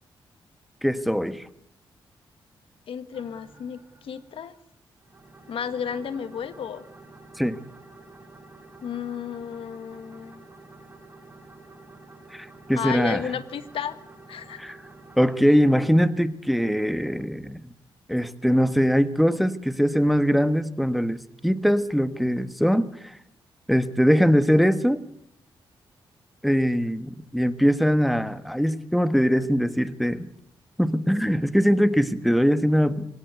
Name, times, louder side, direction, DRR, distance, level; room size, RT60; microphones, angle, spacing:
voice 1, 0.8-1.5 7.4-7.6 12.3-13.3 14.6-14.8 15.2-17.7 18.1-23.2 23.7-25.0 26.4-30.3 30.8-33.1, equal, ahead, 12 dB, 1.4 m, -22 dB
voice 2, 2.9-4.5 5.5-6.8 8.8-10.4 12.7-14.0 14.3-14.6, left 8 dB, 80° left, 13 dB, 1.5 m, -33 dB
sound 1, 3.1-4.6 5.0-15.3, right 2 dB, 20° right, 6.4 m, -49 dB
25.0 x 17.5 x 8.3 m, 0.71 s
cardioid pair, 80°, 9 cm